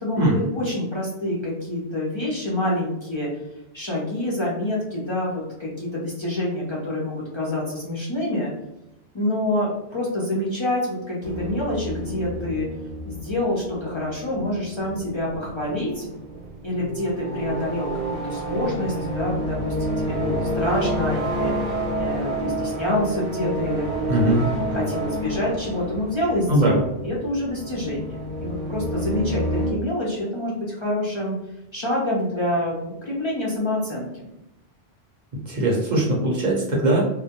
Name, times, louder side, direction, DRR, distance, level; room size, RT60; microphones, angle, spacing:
voice 1, 0.0-3.3 3.7-8.5 9.1-12.7 13.1-16.1 16.6-21.5 22.0-24.3 24.7-31.3 31.7-34.3, left 1 dB, 40° left, -5 dB, 0.4 m, -27 dB
sound 1, 11.2-29.7, right 1 dB, 25° left, 0.8 m, -29 dB
voice 2, 24.1-24.5 26.5-26.8 35.5-37.0, right 1 dB, 50° right, -3 dB, 0.7 m, -20 dB
2.2 x 2.1 x 2.8 m, 0.87 s
omnidirectional pair, 1.1 m